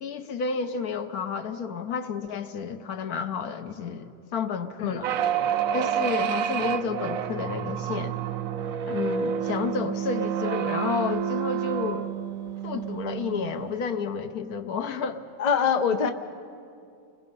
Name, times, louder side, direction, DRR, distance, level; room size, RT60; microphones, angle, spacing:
voice 1, 0.0-5.1 5.7-8.2 8.9-12.1 12.6-15.2, left 5 dB, 65° left, 9 dB, 1.3 m, -31 dB
sound 1, 5.0-13.8, right 8 dB, 65° right, 1.0 m, -29 dB
voice 2, 15.4-16.1, left 7 dB, 45° left, 7 dB, 0.5 m, -23 dB
29.0 x 21.0 x 5.4 m, 2.5 s
omnidirectional pair, 1.8 m